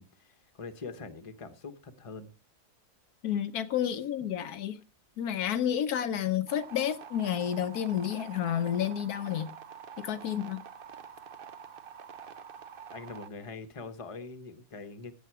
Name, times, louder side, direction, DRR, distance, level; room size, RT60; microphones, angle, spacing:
voice 1, 0.0-2.3 12.9-15.1, left 4 dB, 25° left, 1.1 m, -43 dB
voice 2, 3.2-4.8 5.2-9.5 10.0-10.6, left 10 dB, 75° left, 1.3 m, -30 dB
sound 1, 6.5-13.3, right 7 dB, 50° right, 0.7 m, -47 dB
16.0 x 7.4 x 4.7 m
omnidirectional pair, 1.7 m